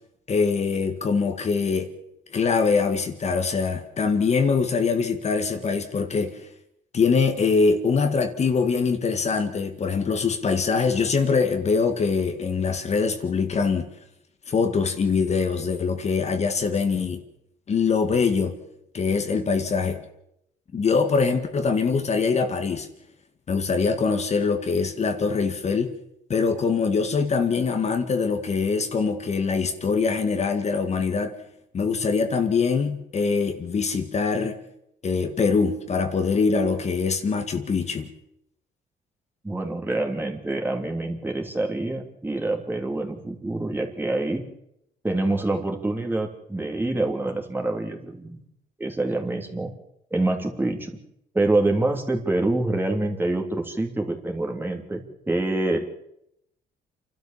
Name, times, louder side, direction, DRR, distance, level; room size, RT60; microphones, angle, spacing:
voice 1, 0.3-1.9 2.3-6.5 6.9-13.9 14.5-17.2 17.7-18.6 18.9-20.0 20.7-22.9 23.5-25.9 26.3-31.3 31.7-34.6 35.0-38.1, left 5 dB, 40° left, 2.0 m, -23 dB
voice 2, 39.4-44.4 45.0-48.4 48.8-49.7 50.1-51.0 51.3-55.9, right 2 dB, 10° right, 3.2 m, -26 dB
28.5 x 12.5 x 7.5 m
cardioid pair, 105°, 17 cm